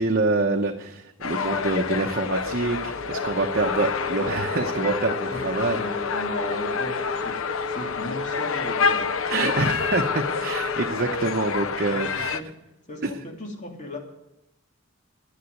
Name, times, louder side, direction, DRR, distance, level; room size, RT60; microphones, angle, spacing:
voice 1, 0.0-5.8 9.3-12.4 13.0-13.1, right 3 dB, 50° right, 2 dB, 0.9 m, -26 dB
sound 1, 1.2-12.4, left 5 dB, 85° left, 0.7 m, -28 dB
sound 2, 3.0-10.9, left 3 dB, 30° right, 1.2 m, -35 dB
voice 2, 5.7-9.1 11.9-12.5 12.9-14.0, left 1 dB, 35° left, 0 dB, 3.0 m, -37 dB
10.5 x 10.0 x 9.4 m, 0.88 s
head